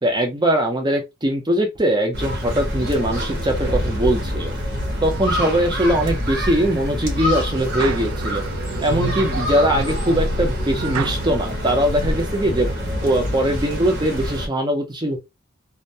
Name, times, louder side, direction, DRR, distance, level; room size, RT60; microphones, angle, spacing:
voice 1, 0.0-4.5 5.0-8.4 8.8-12.7 13.0-15.2, right 1 dB, 20° right, 0.6 m, -21 dB
sound 1, 2.1-14.5, equal, 55° right, 0.9 m, -26 dB
sound 2, 5.1-5.8 6.3-6.7 7.3-11.3 11.8-12.1, right 3 dB, 85° right, 0.3 m, -29 dB
2.2 x 2.1 x 2.6 m
head